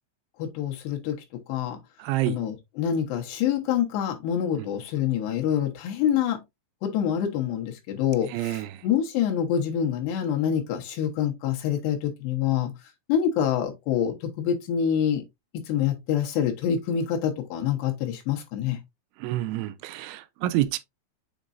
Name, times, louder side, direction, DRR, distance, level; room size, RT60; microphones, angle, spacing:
voice 1, 0.4-1.2 1.5-1.8 2.3-6.4 6.8-12.7 13.1-15.2 15.7-18.8, left 9 dB, 70° left, 3.0 m, -26 dB
voice 2, 2.0-2.4 4.6-4.7 8.3-8.8 19.2-20.8, right 15 dB, 85° right, 2.9 m, -28 dB
7.2 x 5.2 x 2.6 m
omnidirectional pair, 5.4 m